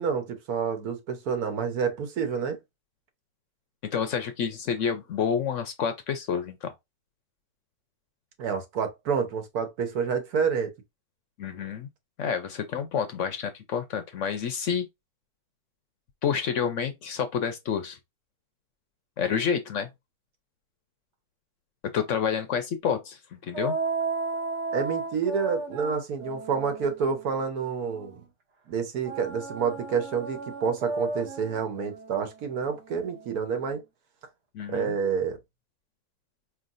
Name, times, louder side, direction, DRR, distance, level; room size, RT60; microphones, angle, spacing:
voice 1, 0.0-2.6 8.4-10.7 24.7-28.2 28.7-33.8 34.7-35.4, right 6 dB, 75° right, 1.5 m, -28 dB
voice 2, 3.9-6.7 11.4-11.9 12.2-14.9 16.2-18.0 19.2-19.9 21.9-23.8 34.5-34.9, left 7 dB, 65° left, 0.9 m, -29 dB
sound 1, 23.5-28.2 29.0-33.7, right 3 dB, 55° right, 1.2 m, -34 dB
4.8 x 3.3 x 2.5 m
omnidirectional pair, 1.6 m